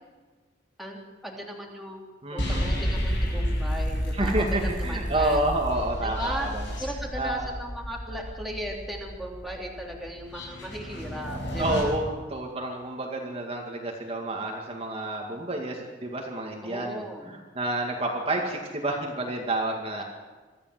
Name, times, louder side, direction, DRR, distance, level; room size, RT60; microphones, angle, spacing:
voice 1, 0.8-5.4 6.0-6.5 6.8-11.9 16.6-17.4 18.4-18.5, equal, ahead, -2 dB, 3.3 m, -37 dB
voice 2, 2.2-2.6 4.1-6.6 7.2-7.5 11.6-20.0, right 1 dB, 30° right, 0 dB, 2.3 m, -29 dB
sound 1, 2.4-11.8, equal, 75° left, 7.9 m, -31 dB
24.0 x 14.0 x 7.8 m, 1.4 s
head